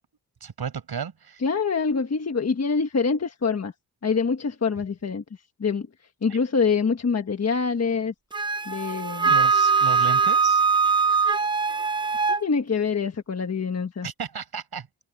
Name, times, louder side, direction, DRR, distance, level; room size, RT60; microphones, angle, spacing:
voice 1, 0.4-1.4 9.3-10.6 14.0-14.9, right 7 dB, 65° right, 6.7 m, -33 dB
voice 2, 1.4-3.7 4.0-5.2 5.6-5.9 6.2-8.1 8.7-9.3 12.4-14.1, left 5 dB, 40° left, 1.4 m, -25 dB
Wind instrument woodwind instrument, 8.3-12.4, right 5 dB, 10° right, 0.6 m, -21 dB
wide cardioid pair, 165°, 41 cm